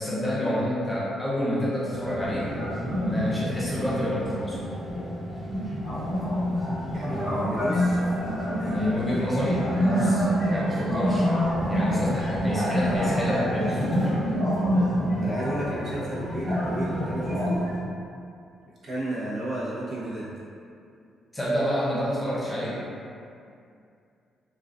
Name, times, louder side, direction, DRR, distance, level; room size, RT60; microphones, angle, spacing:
voice 1, 0.0-2.5 3.0-4.6 8.6-11.3 11.7-14.2 21.3-22.8, equal, 15° left, -8 dB, 0.6 m, -28 dB
sound 1, 1.9-17.8, equal, 10° right, 0.9 m, -27 dB
voice 2, 6.9-8.8 11.9-12.1 15.2-17.6 18.8-20.3, right 1 dB, 50° right, -9 dB, 0.7 m, -34 dB
2.3 x 2.3 x 2.4 m, 2.4 s
cardioid pair, 90°, 0 cm